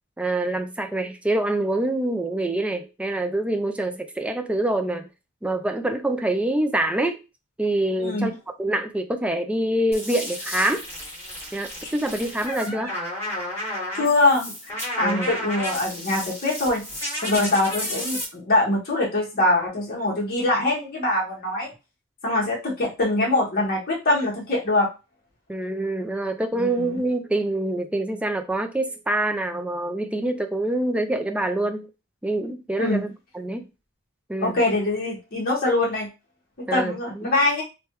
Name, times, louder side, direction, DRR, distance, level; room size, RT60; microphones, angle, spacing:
voice 1, 0.2-5.1 5.4-7.2 7.6-8.3 8.6-10.8 11.5-12.9 15.0-15.3 25.5-31.9 32.2-33.7 34.3-34.6 36.7-37.3, right 1 dB, 5° right, 0.3 m, -25 dB
voice 2, 8.0-8.3 13.9-14.5 15.0-16.8 17.2-21.7 22.2-24.9 26.5-27.0 32.8-33.0 34.4-36.1 36.7-37.6, left 2 dB, 50° left, 1.1 m, -23 dB
sound 1, 9.9-18.2, left 1 dB, 10° left, 1.6 m, -32 dB
3.2 x 2.2 x 3.0 m
head